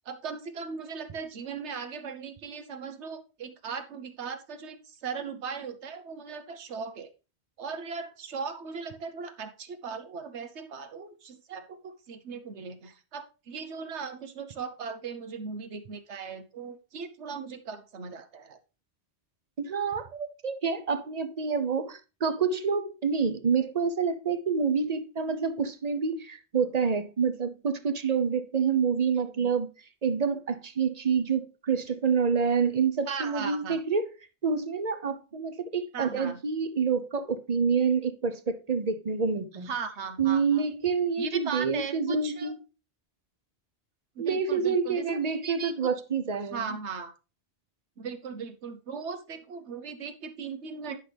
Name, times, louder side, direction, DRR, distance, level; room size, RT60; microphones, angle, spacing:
voice 1, 0.1-7.1 7.6-18.6 29.3-29.5 33.1-33.8 35.9-36.4 39.7-40.6 41.2-42.5 44.2-45.7 46.5-47.1 48.0-51.0, right 5 dB, 85° right, 1.2 m, -38 dB
voice 2, 19.6-29.7 30.0-34.1 34.4-39.7 40.2-42.6 44.2-46.8, right 5 dB, 45° right, 0.7 m, -27 dB
10.0 x 5.8 x 3.3 m
omnidirectional pair, 1.1 m